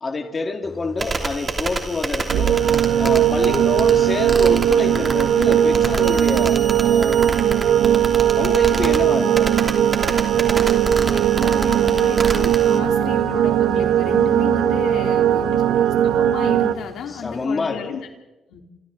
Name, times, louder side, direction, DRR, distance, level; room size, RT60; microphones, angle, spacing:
voice 1, 0.0-2.6 3.0-7.6 8.4-9.6 15.3-15.4 17.1-18.0, left 3 dB, 30° left, 5 dB, 2.2 m, -27 dB
sound 1, 0.6-17.5, left 2 dB, 15° left, 5.0 m, -42 dB
sound 2, 1.0-12.8, right 3 dB, 30° right, 3.0 m, -28 dB
sound 3, 2.3-16.7, right 10 dB, 85° right, 1.2 m, -18 dB
voice 2, 11.1-18.0 18.5-18.6, left 7 dB, 75° left, 3 dB, 3.2 m, -33 dB
30.0 x 27.5 x 3.9 m, 1.1 s
cardioid pair, 90°, 0 cm